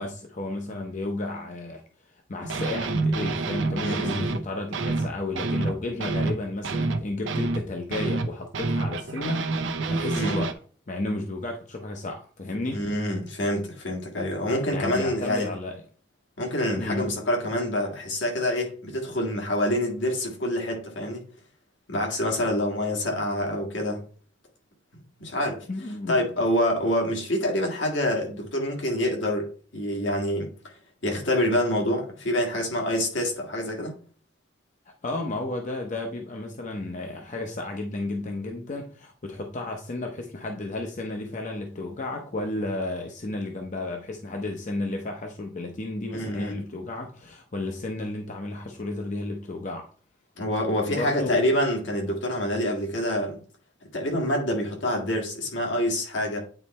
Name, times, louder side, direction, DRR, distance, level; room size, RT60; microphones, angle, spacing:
voice 1, 0.0-1.8 2.3-9.5 9.9-10.6 10.9-12.8 14.7-15.8 16.8-17.2 25.7-26.2 35.0-49.9 50.9-51.4, left 2 dB, 40° left, 0.7 m, -32 dB
sound 1, 2.4-4.4 4.7-10.5, right 3 dB, 85° right, 0.7 m, -27 dB
voice 2, 3.8-4.2 10.1-10.4 12.7-15.5 16.4-21.2 21.9-24.0 25.2-25.7 26.1-30.7 31.0-33.9 46.1-46.5 50.4-53.4 53.9-56.4, left 1 dB, 75° left, 1.9 m, -26 dB
9.0 x 3.2 x 4.2 m
head